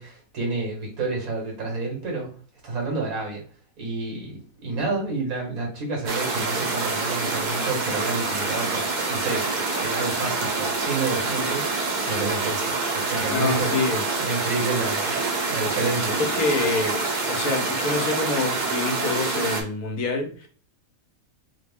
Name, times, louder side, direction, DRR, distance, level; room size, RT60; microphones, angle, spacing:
voice 1, 0.0-2.3 2.6-3.4 3.8-13.9 14.2-15.2 15.5-16.2, right 3 dB, 90° right, 0 dB, 1.8 m, -30 dB
sound 1, 6.1-19.6, right 3 dB, 50° right, 0.6 m, -26 dB
voice 2, 13.3-14.0 16.2-20.5, left 3 dB, 80° left, 2 dB, 1.3 m, -26 dB
3.7 x 2.1 x 3.5 m, 0.41 s
omnidirectional pair, 1.5 m